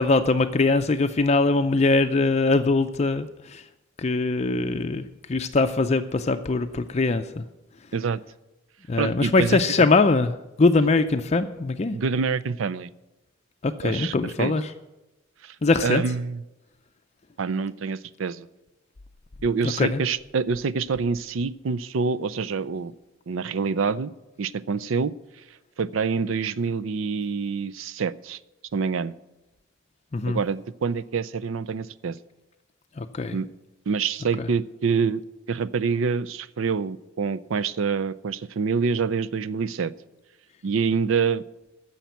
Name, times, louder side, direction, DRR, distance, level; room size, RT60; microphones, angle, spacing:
voice 1, 0.0-3.6 4.0-5.0 5.3-7.4 8.9-12.0 13.6-14.6 15.6-16.0 19.8-20.0 30.1-30.4 33.0-33.4 34.4-34.5, left 3 dB, 35° left, 8 dB, 0.5 m, -22 dB
voice 2, 9.0-9.9 11.9-12.9 13.8-14.5 15.4-15.6 15.8-16.4 17.4-18.5 19.4-22.9 23.3-24.1 24.4-25.1 25.8-28.4 28.7-29.1 30.3-32.2 33.3-33.5 33.9-35.2 35.5-39.9 40.6-41.4, right 5 dB, 80° right, 16 dB, 0.5 m, -26 dB
10.0 x 7.2 x 9.3 m, 0.98 s
head